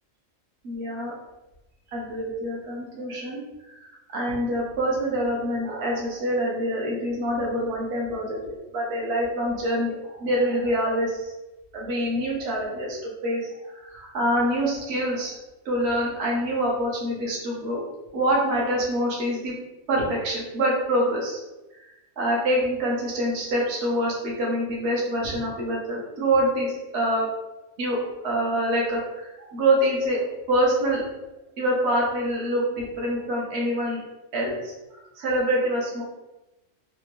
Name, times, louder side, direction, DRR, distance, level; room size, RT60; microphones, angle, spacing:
voice 1, 0.6-1.1 1.9-3.4 3.7-11.3 11.7-15.3 15.6-17.8 18.1-19.5 19.9-21.4 22.2-27.3 27.8-31.0 31.6-34.0 34.3-36.0, right 1 dB, 55° right, -3 dB, 1.1 m, -26 dB
3.4 x 2.5 x 3.0 m, 1.0 s
omnidirectional pair, 1.4 m